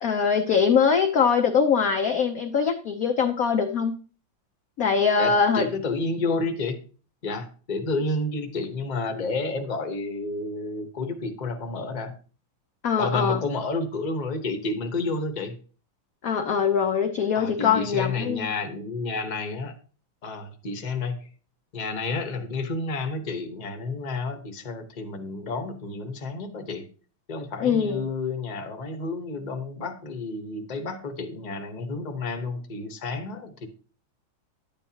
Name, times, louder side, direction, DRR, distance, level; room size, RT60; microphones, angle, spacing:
voice 1, 0.0-3.9 4.8-5.7 12.8-13.4 16.2-18.5 27.6-28.0, left 6 dB, 60° left, 5 dB, 1.0 m, -22 dB
voice 2, 5.2-6.8 7.2-12.2 13.0-15.5 17.3-19.7 20.2-21.3 21.7-26.9 27.3-33.7, left 3 dB, 30° left, 6 dB, 1.0 m, -30 dB
10.5 x 8.8 x 2.9 m, 0.37 s
omnidirectional pair, 2.2 m